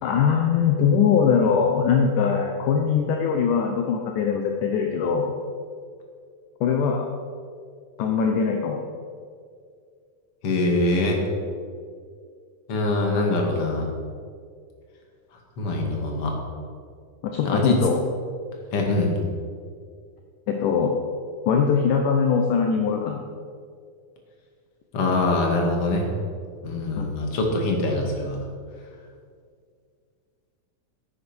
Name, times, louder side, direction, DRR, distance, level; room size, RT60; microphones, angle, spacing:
voice 1, 0.0-5.3 6.6-7.1 8.0-8.8 17.2-18.0 20.5-20.9 21.5-23.2 27.0-27.1, left 6 dB, 70° left, 3 dB, 2.3 m, -21 dB
voice 2, 10.4-11.2 12.7-13.9 15.6-16.3 17.4-17.8 18.7-19.2 24.9-26.1 26.6-28.4, left 2 dB, 45° left, 1 dB, 2.8 m, -23 dB
13.0 x 10.0 x 6.2 m, 2.2 s
omnidirectional pair, 4.1 m